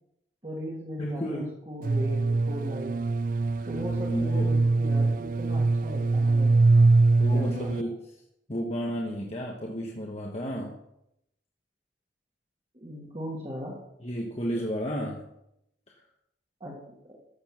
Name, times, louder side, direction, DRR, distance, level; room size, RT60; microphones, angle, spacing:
voice 1, 0.4-3.0 3.6-6.6 7.3-7.7 12.7-13.8 16.6-16.8 17.1-17.2, equal, 30° right, -6 dB, 2.1 m, -37 dB
voice 2, 1.0-1.5 3.6-3.7 4.1-4.6 7.2-8.0 8.5-10.8 14.0-15.3 15.9-16.0, equal, 35° left, -1 dB, 1.2 m, -32 dB
sound 1, 1.8-7.8, right 3 dB, 45° right, 0.3 m, -23 dB
13.5 x 7.0 x 5.9 m, 0.81 s
head